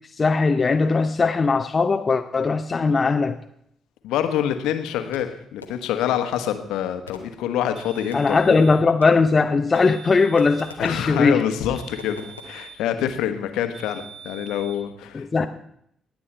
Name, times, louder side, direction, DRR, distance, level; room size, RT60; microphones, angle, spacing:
voice 1, 0.2-3.4 8.1-11.4 15.1-15.5, left 4 dB, 35° left, 6 dB, 0.7 m, -19 dB
voice 2, 4.0-8.4 10.8-15.3, left 10 dB, 65° left, 8 dB, 1.2 m, -26 dB
Fireworks, 5.1-6.1 7.1-8.4 9.0-9.5 9.8-11.1 12.0-12.5, left 4 dB, 85° left, 0.9 m, -45 dB
sound 1, 7.7-8.9 9.7-10.9 11.7-12.9 13.7-14.8, right 7 dB, 60° right, 6.9 m, -44 dB
19.5 x 8.6 x 4.4 m, 0.73 s
figure-of-eight pair, 40°, 0 cm